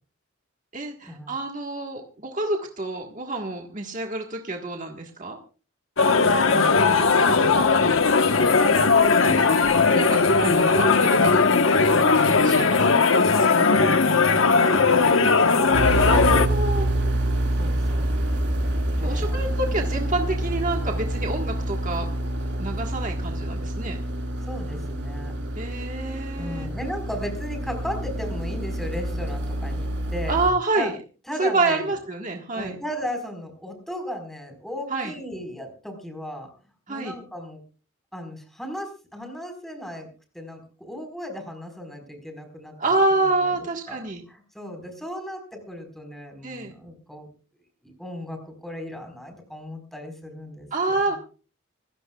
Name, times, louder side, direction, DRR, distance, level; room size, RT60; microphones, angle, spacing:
voice 1, 0.7-5.4 9.1-9.5 9.9-11.5 12.0-13.0 16.0-16.9 19.0-22.1 22.6-24.0 25.5-26.7 30.3-30.9 31.4-32.8 34.9-35.1 36.9-37.1 42.8-44.2 46.4-46.7 50.7-51.2, right 2 dB, 40° right, 2 dB, 1.6 m, -27 dB
sound 1, 6.0-16.5, left 4 dB, 80° left, 1.2 m, -18 dB
voice 2, 6.5-8.3 13.5-16.0 17.6-18.1 19.0-19.4 24.5-25.3 26.4-30.3 30.7-30.9 31.3-31.9 32.5-36.5 36.9-37.6 38.1-40.1 40.3-42.9 43.4-43.5 43.9-44.0 44.3-47.3 47.8-50.7, equal, ahead, 4 dB, 4.6 m, -36 dB
sound 2, 15.7-30.5, right 1 dB, 60° right, 3.9 m, -27 dB
26.5 x 14.5 x 2.4 m, 0.36 s
head